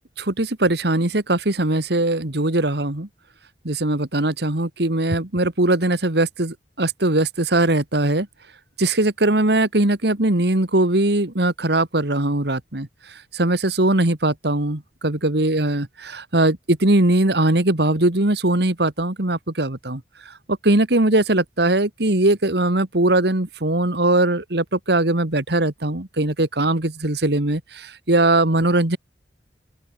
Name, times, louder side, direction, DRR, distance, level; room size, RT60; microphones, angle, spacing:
voice 1, 0.2-3.1 3.6-8.3 8.8-12.9 13.3-20.0 20.6-29.0, right 2 dB, 65° right, 2.2 m, -20 dB
open air
head